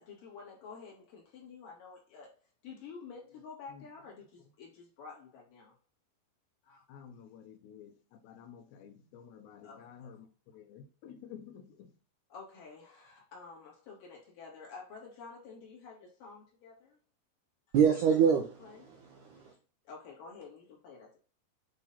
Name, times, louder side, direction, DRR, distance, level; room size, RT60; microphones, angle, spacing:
voice 1, 0.0-2.3 2.6-5.7 6.6-6.8 9.6-10.1 12.3-17.0 18.1-18.3 18.6-18.8 19.8-21.2, left 5 dB, 55° left, 4.5 m, -50 dB
voice 2, 6.9-12.0, left 8 dB, 80° left, 3.1 m, -52 dB
voice 3, 17.7-19.5, right 7 dB, 85° right, 1.8 m, -26 dB
9.1 x 3.9 x 5.8 m
omnidirectional pair, 4.9 m